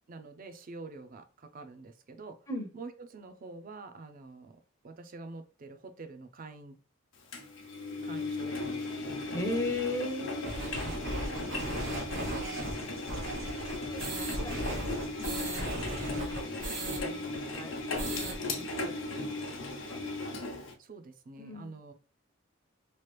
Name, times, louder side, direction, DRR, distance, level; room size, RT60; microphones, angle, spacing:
voice 1, 0.1-2.5 2.7-4.6 4.8-6.8 8.0-9.6 10.8-12.0 20.5-21.9, right 3 dB, 45° right, 8 dB, 0.4 m, -47 dB
Engine, 7.3-20.7, left 2 dB, 70° left, 0.7 m, -37 dB
voice 2, 9.3-11.1 12.4-17.8 18.1-20.0 21.4-21.8, left 2 dB, 15° left, 2 dB, 0.6 m, -40 dB
sound 1, 10.4-17.0 17.3-17.4 17.7-18.4, right 1 dB, 65° right, 1.1 m, -37 dB
sound 2, 10.7-16.2, right 2 dB, 90° right, 0.9 m, -49 dB
3.1 x 2.4 x 3.1 m, 0.35 s
head